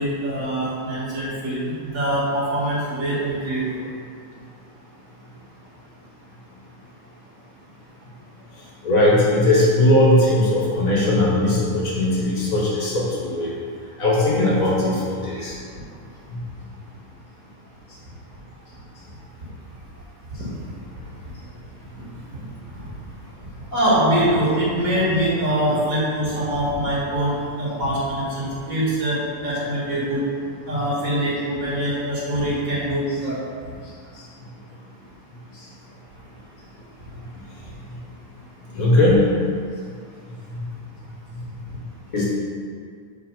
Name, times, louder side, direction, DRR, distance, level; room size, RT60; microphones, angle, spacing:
voice 1, 0.0-3.9 23.7-30.2 30.7-33.4, right 1 dB, 60° right, -7 dB, 1.9 m, -23 dB
voice 2, 8.8-13.5 14.0-15.5 16.3-16.4 38.7-39.2 42.1-42.3, left 1 dB, 60° left, -5 dB, 1.6 m, -19 dB
4.5 x 4.1 x 5.7 m, 2.2 s
omnidirectional pair, 1.7 m